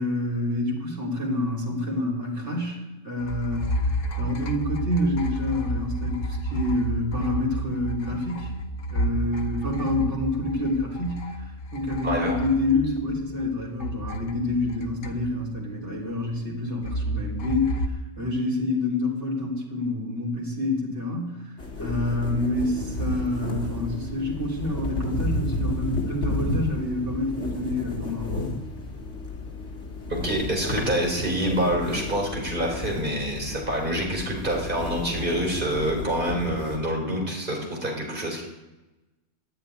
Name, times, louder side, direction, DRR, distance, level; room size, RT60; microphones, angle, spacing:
voice 1, 0.0-3.7 4.2-8.5 8.9-11.4 11.7-17.8 18.2-28.6, left 2 dB, 65° right, -3 dB, 3.6 m, -27 dB
sound 1, 3.2-13.5 13.8-15.6 16.8-17.9, right 1 dB, 85° left, 1.3 m, -31 dB
voice 2, 12.0-12.4 30.1-38.4, right 1 dB, 40° right, 0 dB, 3.9 m, -26 dB
sound 2, 21.6-36.8, left 2 dB, 70° left, 2.6 m, -32 dB
11.5 x 10.0 x 9.5 m, 1.1 s
omnidirectional pair, 1.3 m